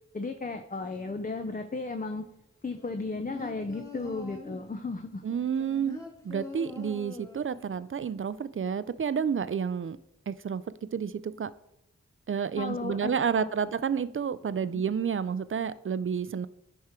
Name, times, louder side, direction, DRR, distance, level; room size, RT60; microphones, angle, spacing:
voice 1, 0.1-2.3 2.6-5.2 12.6-13.5 14.6-14.8, left 3 dB, 30° left, 7 dB, 0.6 m, -35 dB
sound 1, 2.8-4.7 5.3-7.7 8.0-8.1, left 2 dB, 10° left, 1.6 m, -43 dB
voice 2, 5.2-6.0 6.2-10.0 10.3-10.6 10.9-11.5 12.3-16.5, right 7 dB, 45° right, 16 dB, 0.4 m, -30 dB
10.5 x 3.7 x 4.4 m, 0.84 s
wide cardioid pair, 50°, 30 cm